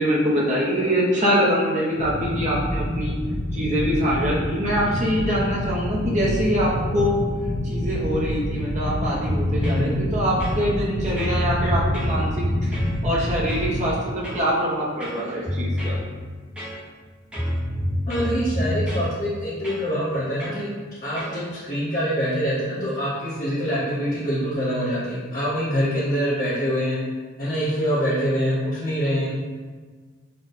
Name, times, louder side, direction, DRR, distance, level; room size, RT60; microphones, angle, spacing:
voice 1, 0.0-3.1 3.5-7.2 7.6-12.8 13.0-16.0 25.8-26.0, equal, 35° right, -5 dB, 0.9 m, -24 dB
sound 1, 2.0-13.9, equal, 60° left, 0.7 m, -27 dB
sound 2, 9.3-9.9 10.4-10.9 11.2-12.9 13.5-13.7 14.2-14.5 15.0-16.1 16.6-17.0 17.3-19.1 19.6-19.9 20.4-20.6 21.2-21.4, left 1 dB, 5° right, 0.9 m, -27 dB
voice 2, 18.1-20.7 21.0-27.0 27.4-29.3, equal, 40° left, -14 dB, 1.4 m, -25 dB
4.2 x 2.4 x 4.0 m, 1.5 s
head